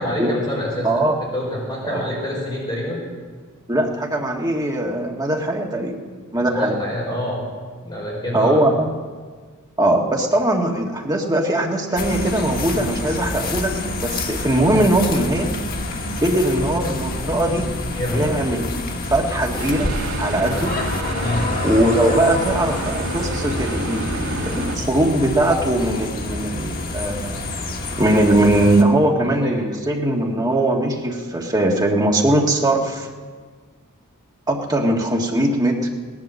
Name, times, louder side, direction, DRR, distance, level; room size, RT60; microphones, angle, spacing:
voice 1, 0.0-0.9 1.3-3.0 6.6-7.4 7.8-8.6 17.9-18.2 21.2-21.5 29.1-29.5, left 1 dB, 20° left, -4 dB, 5.0 m, -26 dB
voice 2, 0.8-1.2 1.8-2.0 3.7-6.0 6.3-6.8 8.3-8.9 9.8-15.5 16.2-17.7 18.1-18.8 19.1-20.8 21.6-27.4 28.0-33.1 34.5-35.9, right 1 dB, 20° right, 0 dB, 1.7 m, -20 dB
sound 1, 12.0-28.8, left 2 dB, 45° left, 1.5 m, -28 dB
sound 2, 19.6-24.8, right 1 dB, 80° right, 2.3 m, -28 dB
17.5 x 11.0 x 7.5 m, 1.5 s
head